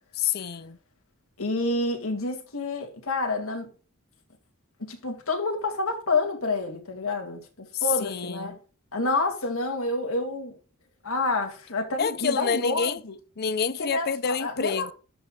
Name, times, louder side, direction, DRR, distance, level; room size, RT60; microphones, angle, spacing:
voice 1, 0.1-0.8 7.7-8.6 12.0-13.0 13.4-14.9, left 7 dB, 45° left, 0.5 m, -28 dB
voice 2, 1.4-3.7 4.8-8.6 8.9-10.5 11.0-13.1 13.8-14.9, left 2 dB, 70° left, 2.4 m, -28 dB
12.0 x 5.8 x 2.4 m
head